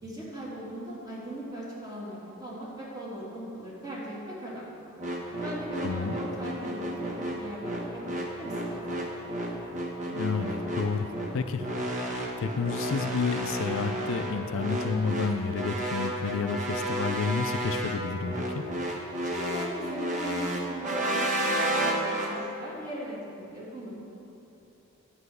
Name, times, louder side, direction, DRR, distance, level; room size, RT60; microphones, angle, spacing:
voice 1, 0.0-4.8 5.3-9.0 19.2-24.0, right 1 dB, 20° right, -7 dB, 2.7 m, -39 dB
sound 1, 5.0-22.3, right 1 dB, 35° right, 1.2 m, -31 dB
voice 2, 5.8-6.1 10.1-11.1 11.3-11.7 12.1-18.6, left 5 dB, 65° left, 9 dB, 0.4 m, -30 dB
9.8 x 5.7 x 8.0 m, 2.9 s
head